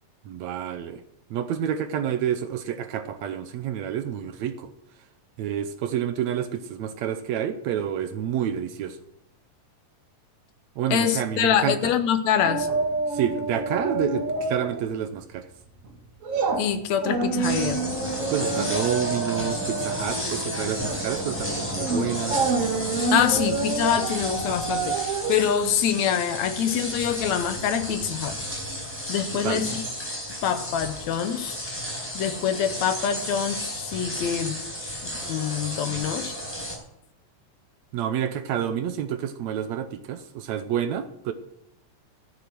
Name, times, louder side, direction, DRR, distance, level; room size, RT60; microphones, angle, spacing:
voice 1, 0.3-1.0 1.3-4.7 5.4-9.0 10.8-11.8 13.1-15.5 18.3-22.4 29.3-29.6 37.9-41.3, right 9 dB, 75° right, 2.0 m, -29 dB
voice 2, 10.9-12.7 16.6-17.8 23.1-25.0 25.3-28.4 29.1-29.8 30.4-31.6 32.1-34.6 35.0-36.3, left 8 dB, 75° left, 2.1 m, -25 dB
sound 1, 12.4-14.8 15.1-15.4 15.8-26.8 27.1-27.2, right 4 dB, 40° right, 1.3 m, -28 dB
sound 2, 17.4-36.8, equal, 5° left, 4.3 m, -32 dB
13.5 x 7.9 x 6.2 m
omnidirectional pair, 3.4 m